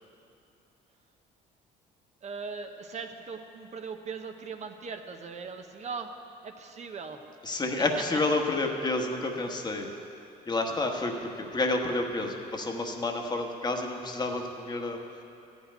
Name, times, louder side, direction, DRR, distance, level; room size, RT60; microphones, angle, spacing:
voice 1, 2.2-6.1 6.4-7.3, right 5 dB, 40° right, 5 dB, 0.8 m, -39 dB
voice 2, 7.4-9.9 10.5-15.2, left 2 dB, 25° left, 2 dB, 1.2 m, -30 dB
13.5 x 5.4 x 9.1 m, 2.7 s
cardioid pair, 110°, 17 cm